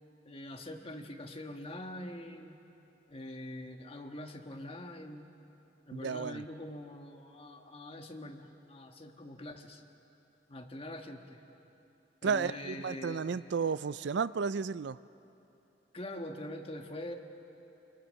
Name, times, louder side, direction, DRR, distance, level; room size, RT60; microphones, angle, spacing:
voice 1, 0.2-2.6 3.1-5.3 5.9-9.8 10.5-11.4 12.2-13.3 15.9-17.1, left 1 dB, 30° left, 4 dB, 1.5 m, -44 dB
voice 2, 5.9-6.4 12.2-15.0, right 5 dB, 65° right, 17 dB, 0.4 m, -33 dB
25.5 x 22.0 x 6.5 m, 2.9 s
head